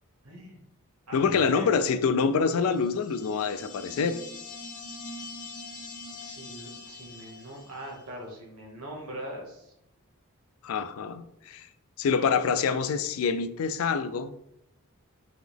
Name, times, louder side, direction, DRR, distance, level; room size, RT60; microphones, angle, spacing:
voice 1, 0.2-0.6 1.1-1.7 6.2-9.7, equal, 80° right, -2 dB, 1.3 m, -41 dB
voice 2, 1.1-4.2 10.6-11.7 12.0-14.3, left 5 dB, 65° left, 11 dB, 0.3 m, -26 dB
sound 1, 2.6-8.0, left 3 dB, 35° left, 0.7 m, -43 dB
3.9 x 2.9 x 3.4 m, 0.80 s
head